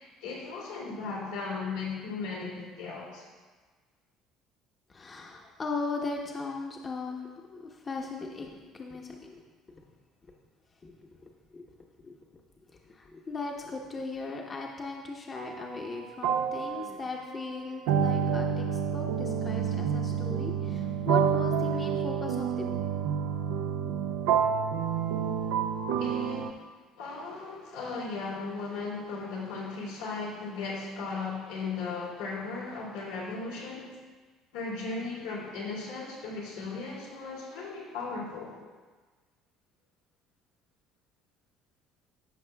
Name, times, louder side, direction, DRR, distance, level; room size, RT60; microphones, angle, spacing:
voice 1, 0.0-3.2 26.0-26.6 27.0-33.9 34.5-38.5, left 4 dB, 90° left, -7 dB, 2.6 m, -36 dB
voice 2, 4.9-9.4 10.3-10.4 10.8-10.9 11.2-11.6 12.0-12.4 12.8-22.7, left 3 dB, 35° left, 0 dB, 0.9 m, -38 dB
sound 1, 15.4-15.6 16.2-26.5, right 7 dB, 80° right, 0.5 m, -29 dB
14.0 x 5.9 x 2.3 m, 1.4 s
hypercardioid pair, 70°, 0 cm